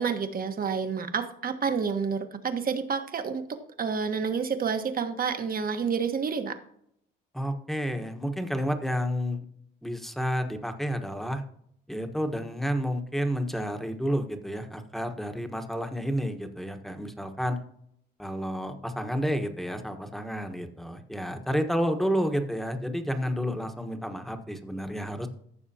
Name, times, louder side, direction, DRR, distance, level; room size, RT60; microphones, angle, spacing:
voice 1, 0.0-6.6, right 6 dB, 45° right, 8 dB, 1.3 m, -29 dB
voice 2, 7.3-9.4 9.8-11.4 11.9-17.6 18.2-25.3, equal, ahead, 6 dB, 1.3 m, -30 dB
15.0 x 6.6 x 2.9 m, 0.70 s
cardioid pair, 90°, 20 cm